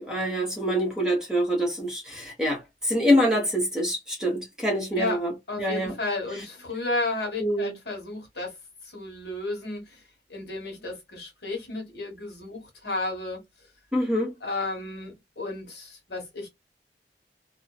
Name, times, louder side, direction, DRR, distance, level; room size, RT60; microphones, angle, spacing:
voice 1, 0.0-5.3 5.6-5.9 7.4-7.7 13.9-14.3, equal, 5° right, 1.0 m, -25 dB
voice 2, 5.5-8.6 8.8-10.0 10.3-13.4 14.4-16.5, left 2 dB, 65° left, 1.2 m, -33 dB
2.5 x 2.3 x 2.3 m
head